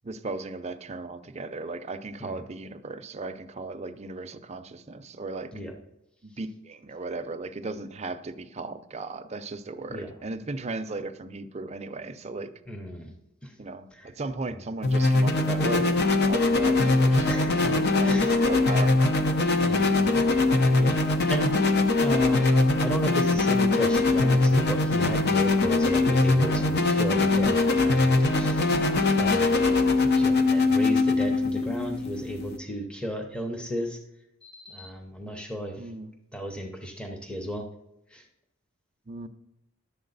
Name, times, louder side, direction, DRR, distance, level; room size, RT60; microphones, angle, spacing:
voice 1, 0.0-5.5 6.2-12.5 13.6-17.6 17.8-19.1 35.8-36.1 39.1-39.3, right 3 dB, 35° right, 8 dB, 0.6 m, -36 dB
voice 2, 12.7-13.1 13.4-13.5 13.9-14.1 17.3-17.7 18.0-18.4 19.6-20.3 20.6-21.0 21.3-21.6 22.0-28.7 29.1-34.0 34.4-35.8 36.3-37.7 38.1-38.2, equal, 5° left, 3 dB, 0.7 m, -34 dB
sound 1, 14.8-32.6, left 2 dB, 55° left, 0.8 m, -22 dB
11.0 x 7.2 x 4.0 m, 0.86 s
head